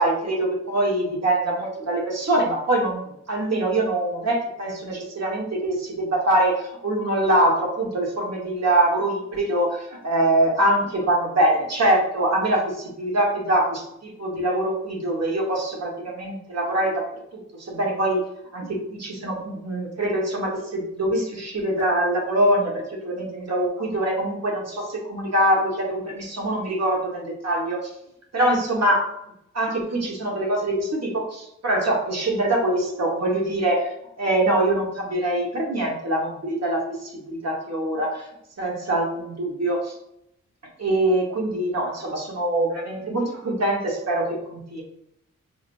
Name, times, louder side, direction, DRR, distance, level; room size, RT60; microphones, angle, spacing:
voice 1, 0.0-17.0 17.3-18.2 18.5-27.9 28.3-29.1 29.5-38.3 38.6-39.9 40.8-44.8, right 1 dB, 50° right, -2 dB, 1.6 m, -24 dB
5.2 x 3.1 x 2.6 m, 0.77 s
cardioid pair, 50°, 33 cm